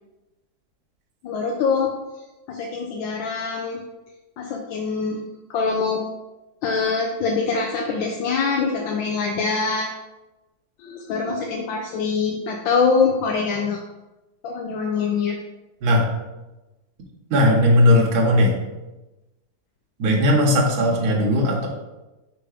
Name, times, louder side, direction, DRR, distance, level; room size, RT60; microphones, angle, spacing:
voice 1, 1.2-1.9 2.5-3.8 4.4-5.2 5.5-6.0 6.6-9.9 10.8-13.8 14.4-15.4, left 5 dB, 85° left, 1 dB, 1.4 m, -24 dB
voice 2, 17.3-18.5 20.0-21.7, left 1 dB, 55° right, -1 dB, 1.5 m, -17 dB
4.9 x 4.6 x 4.9 m, 1.1 s
omnidirectional pair, 2.1 m